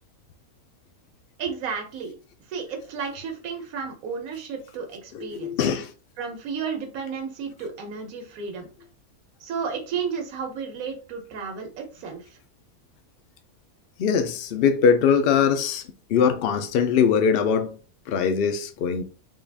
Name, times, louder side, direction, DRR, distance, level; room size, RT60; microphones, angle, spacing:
voice 1, 1.4-2.1 2.5-5.6 6.2-8.7 9.4-12.2, right 6 dB, 70° right, 1.2 m, -32 dB
voice 2, 5.1-5.9 14.0-15.8 16.1-17.8 18.1-19.0, left 6 dB, 75° left, 0.5 m, -21 dB
3.7 x 2.4 x 3.4 m
omnidirectional pair, 1.6 m